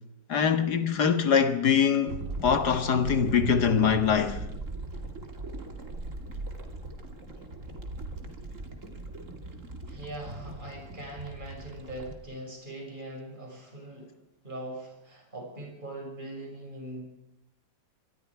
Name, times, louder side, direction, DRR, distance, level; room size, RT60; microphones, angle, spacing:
voice 1, 0.3-4.4, left 7 dB, 65° left, 2.2 m, -23 dB
sound 1, 2.1-12.1, right 1 dB, 45° right, 2.9 m, -39 dB
voice 2, 9.9-14.1 14.4-17.0, right 1 dB, 25° right, 6.3 m, -41 dB
26.0 x 24.0 x 4.8 m
omnidirectional pair, 1.9 m